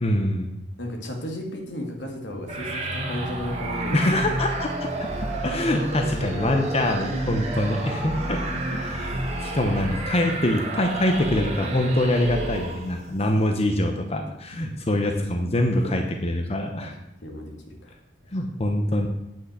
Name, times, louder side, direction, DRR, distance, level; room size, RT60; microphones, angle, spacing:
voice 1, 0.0-0.5 3.9-5.1 5.4-8.4 8.7-16.9 18.3-19.1, left 1 dB, 35° left, 4 dB, 0.9 m, -24 dB
voice 2, 0.8-4.1 15.8-16.0 16.9-17.0 17.2-17.9, left 1 dB, 75° left, 2 dB, 2.0 m, -34 dB
sound 1, 2.5-13.1, right 1 dB, 35° right, 1.8 m, -30 dB
9.0 x 5.7 x 8.2 m, 0.88 s
head